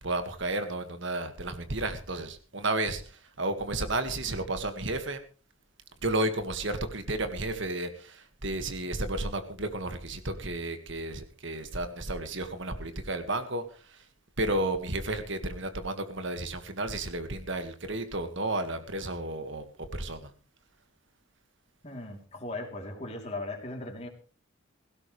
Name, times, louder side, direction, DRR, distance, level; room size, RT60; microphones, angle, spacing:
voice 1, 0.0-5.2 6.0-14.1 14.4-20.3, right 2 dB, 55° right, 8 dB, 1.9 m, -32 dB
voice 2, 21.8-24.1, left 2 dB, 30° left, 1 dB, 3.3 m, -38 dB
18.0 x 16.5 x 3.3 m, 0.37 s
head